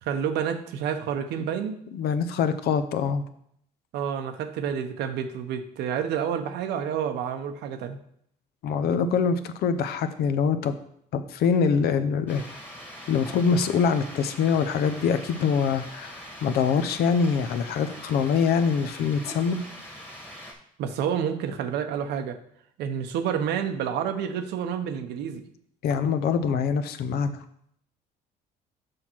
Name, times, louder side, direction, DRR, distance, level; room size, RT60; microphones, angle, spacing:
voice 1, 0.0-1.7 3.9-8.0 20.8-22.4 22.8-25.4, right 8 dB, 80° right, 8 dB, 0.9 m, -29 dB
voice 2, 1.9-3.2 8.6-10.8 11.1-12.4 13.1-19.6 25.8-27.4, left 6 dB, 70° left, 11 dB, 0.7 m, -24 dB
sound 1, 12.3-20.5, equal, 10° left, 1.7 m, -42 dB
6.4 x 5.8 x 4.5 m, 0.70 s
cardioid pair, 110°, 17 cm